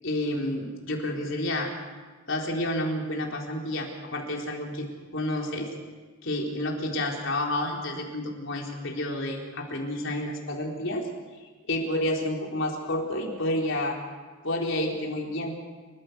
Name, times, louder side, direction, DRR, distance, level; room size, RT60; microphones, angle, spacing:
voice 1, 0.0-1.7 2.3-4.9 5.1-5.7 6.2-11.1 11.7-14.0 14.4-15.5, left 1 dB, 65° left, 0 dB, 4.0 m, -30 dB
30.0 x 15.5 x 6.9 m, 1.4 s
head